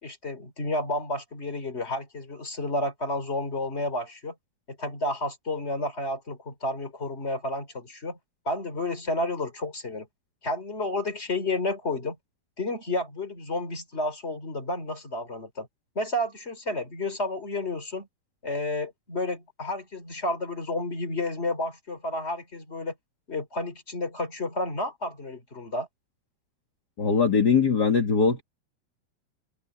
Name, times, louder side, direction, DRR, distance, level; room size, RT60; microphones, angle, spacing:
voice 1, 0.0-4.3 4.7-8.2 8.4-10.1 10.4-12.2 12.6-15.7 15.9-18.1 18.4-22.9 23.3-25.9, left 2 dB, 15° left, 3.4 m, -31 dB
voice 2, 27.0-28.4, left 5 dB, 35° left, 1.8 m, -21 dB
open air
omnidirectional pair, 4.4 m